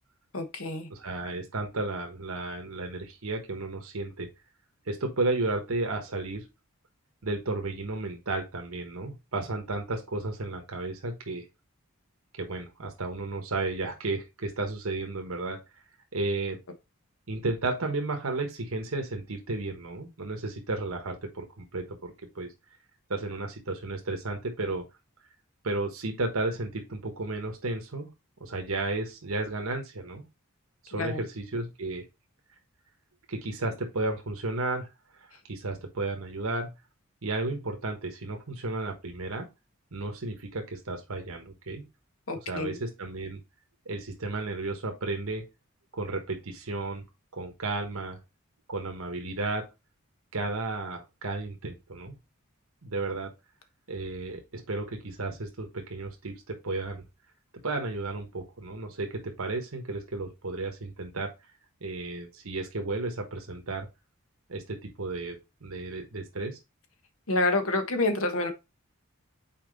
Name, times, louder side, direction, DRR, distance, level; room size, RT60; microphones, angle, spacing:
voice 1, 0.3-0.9 30.9-31.2 42.3-42.8 67.3-68.5, left 2 dB, 70° left, 1.2 m, -28 dB
voice 2, 0.9-4.3 4.9-6.4 7.2-11.4 12.4-15.6 16.1-16.6 17.3-22.5 23.1-24.9 25.6-28.1 28.4-30.2 30.8-32.0 33.3-34.9 35.5-36.7 37.2-39.5 39.9-41.8 42.5-43.4 43.8-45.4 45.9-47.0 47.3-48.2 48.7-49.7 50.3-52.2 52.8-53.3 53.9-57.0 57.6-61.3 61.8-63.9 64.5-66.6, right 2 dB, 75° right, 1.3 m, -33 dB
5.7 x 4.5 x 3.9 m
head